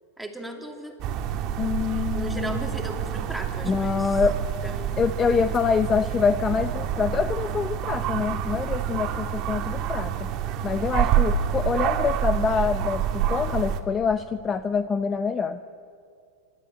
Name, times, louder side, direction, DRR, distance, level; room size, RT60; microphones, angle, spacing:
voice 1, 0.2-0.9 2.1-4.2 4.6-4.9, right 1 dB, ahead, 2 dB, 2.6 m, -36 dB
sound 1, 1.0-13.8, right 9 dB, 40° right, 1.6 m, -27 dB
voice 2, 1.6-2.7 3.6-4.4 4.9-10.3 10.6-15.6, left 6 dB, 20° left, 10 dB, 0.7 m, -25 dB
28.0 x 13.0 x 9.7 m, 2.4 s
supercardioid pair, 145°, 0 cm